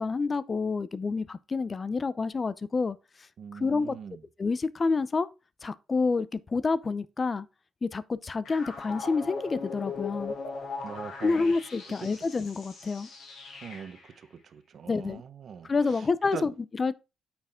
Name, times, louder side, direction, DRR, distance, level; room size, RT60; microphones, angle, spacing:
voice 1, 0.0-3.0 3.5-4.0 4.4-5.3 5.6-7.5 7.8-10.3 11.2-13.1 14.9-15.2 15.7-16.9, left 4 dB, 35° left, 0.6 m, -28 dB
voice 2, 3.4-4.2 10.8-11.4 13.6-15.7 16.3-16.5, right 7 dB, 55° right, 1.0 m, -41 dB
sound 1, 8.4-14.1, left 4 dB, 70° left, 3.2 m, -39 dB
8.7 x 6.0 x 3.6 m
cardioid pair, 90°, 0 cm